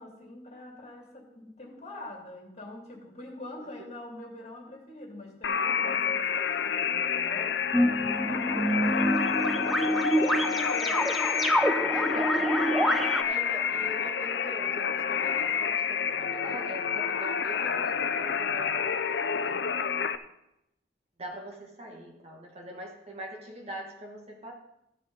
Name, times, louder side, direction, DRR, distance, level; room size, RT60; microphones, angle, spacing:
voice 1, 0.0-7.8 8.2-11.5 11.9-12.1 12.9-13.2, left 1 dB, 40° left, 0 dB, 2.5 m, -44 dB
sound 1, 5.4-20.2, left 7 dB, 75° left, 0.5 m, -29 dB
sound 2, 7.7-13.2, equal, ahead, 0.6 m, -26 dB
voice 2, 11.9-12.6 13.2-19.7 21.2-24.5, right 1 dB, 35° right, 0 dB, 1.5 m, -42 dB
15.0 x 5.2 x 5.2 m, 0.84 s
head